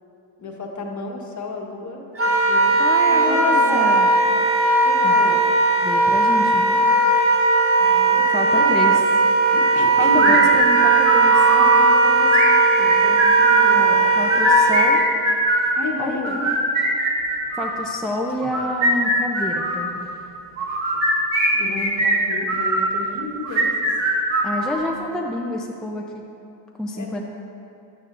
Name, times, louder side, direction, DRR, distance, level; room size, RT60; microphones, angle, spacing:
voice 1, 0.4-2.0 2.5-2.8 3.1-3.9 4.8-5.4 5.8-5.9 7.8-9.0 9.5-10.4 11.4-14.1 15.7-16.3 21.5-23.9 26.9-27.2, left 2 dB, 35° left, 0 dB, 1.4 m, -31 dB
Wind instrument woodwind instrument, 2.2-14.9, right 3 dB, 30° right, 1.3 m, -17 dB
voice 2, 2.8-4.1 5.0-5.1 5.8-6.8 8.3-8.9 10.0-11.5 14.2-15.0 16.0-16.6 17.5-20.1 24.4-26.0 26.8-27.2, left 1 dB, ahead, -1 dB, 0.7 m, -28 dB
sound 1, 10.2-11.7 12.3-13.7 14.2-15.7 16.2-17.8 18.4-19.8 20.6-22.9 23.4-24.9, right 1 dB, 70° right, 1.7 m, -21 dB
11.5 x 8.5 x 2.6 m, 2.7 s
supercardioid pair, 75°, 49 cm